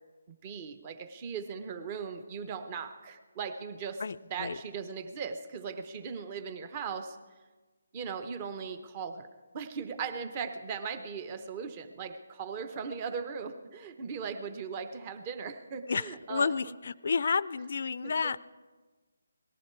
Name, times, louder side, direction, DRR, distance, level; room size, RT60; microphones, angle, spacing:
voice 1, 0.4-4.0 4.3-7.2 7.9-9.3 9.5-16.7 18.0-18.4, right 6 dB, 25° right, 10 dB, 0.8 m, -38 dB
voice 2, 4.0-4.6 15.9-18.4, left 5 dB, 55° left, 19 dB, 0.4 m, -31 dB
18.5 x 14.0 x 4.6 m, 1.3 s
hypercardioid pair, 160°, 0 cm